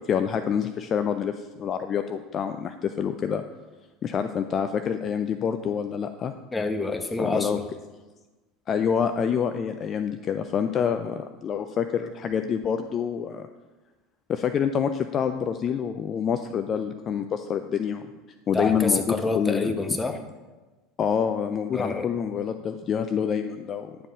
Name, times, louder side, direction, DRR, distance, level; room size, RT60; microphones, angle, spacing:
voice 1, 0.0-3.4 4.0-6.3 7.2-7.6 8.7-13.5 14.3-18.0 18.5-19.7 21.0-23.9, left 7 dB, 35° left, 9 dB, 0.5 m, -27 dB
voice 2, 6.5-7.6 18.5-20.2 21.7-22.1, left 2 dB, 15° left, 6 dB, 1.3 m, -27 dB
11.0 x 7.5 x 5.0 m, 1.2 s
figure-of-eight pair, 70°, 0 cm